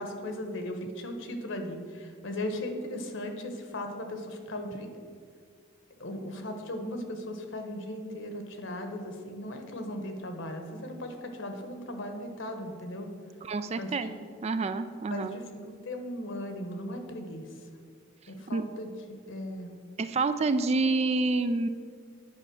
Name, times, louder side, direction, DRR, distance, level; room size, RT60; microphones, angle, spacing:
voice 1, 0.0-4.9 6.0-13.1 13.8-14.2 15.1-17.5 18.3-19.7, left 1 dB, 70° left, 5 dB, 1.1 m, -37 dB
voice 2, 13.4-14.1 14.4-15.4 18.5-18.6 20.0-21.7, right 3 dB, 30° right, 11 dB, 0.4 m, -28 dB
9.8 x 5.4 x 6.2 m, 2.1 s
head